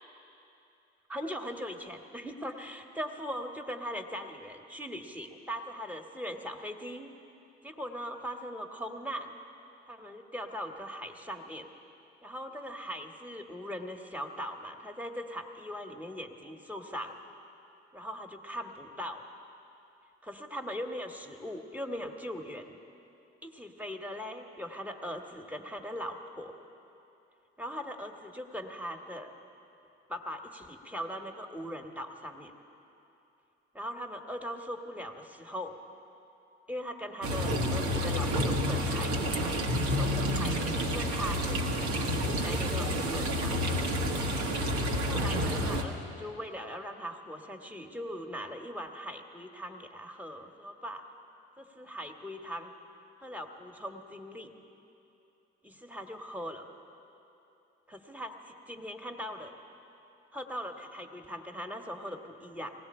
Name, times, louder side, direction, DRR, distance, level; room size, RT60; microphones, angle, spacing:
voice 1, 1.1-7.1 7.6-9.3 9.9-11.7 12.2-17.1 17.9-19.2 20.2-22.7 23.4-26.5 27.6-29.3 30.1-32.5 33.7-35.8 36.7-39.6 40.0-43.6 45.0-51.0 51.6-52.7 53.2-54.5 55.6-56.6 57.9-59.5 60.3-62.7, equal, 5° right, 3 dB, 1.6 m, -40 dB
sound 1, 37.2-45.8, equal, 70° right, 1.4 m, -29 dB
19.5 x 16.5 x 4.4 m, 2.8 s
hypercardioid pair, 45°, 29 cm